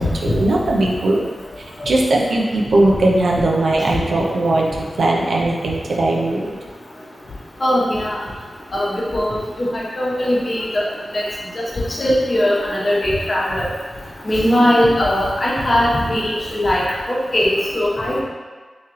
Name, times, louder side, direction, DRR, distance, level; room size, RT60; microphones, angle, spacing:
voice 1, 0.2-1.2 1.9-4.7 5.0-6.4, right 2 dB, 85° right, -1 dB, 0.5 m, -18 dB
voice 2, 7.6-8.2 8.7-10.8 11.1-11.2 12.0-13.7 14.2-16.8 17.1-18.2, left 1 dB, 40° left, -5 dB, 0.9 m, -19 dB
3.6 x 3.0 x 3.0 m, 1.4 s
wide cardioid pair, 90°, 0 cm